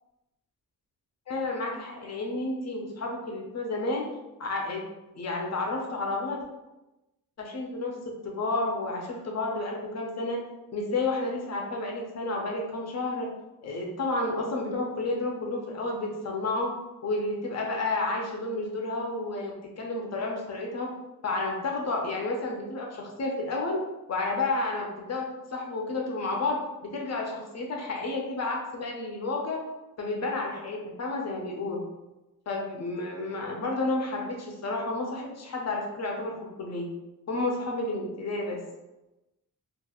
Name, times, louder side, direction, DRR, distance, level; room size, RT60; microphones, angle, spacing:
voice 1, 1.3-4.0 4.4-4.8 5.2-6.4 7.4-7.9 8.2-10.4 10.7-13.3 13.6-16.7 17.0-20.9 21.2-23.8 24.1-26.6 26.9-29.6 30.0-31.8 32.5-36.9 37.3-38.6, left 2 dB, 45° left, 0 dB, 0.5 m, -31 dB
2.9 x 2.4 x 2.3 m, 1.0 s
wide cardioid pair, 180°, 36 cm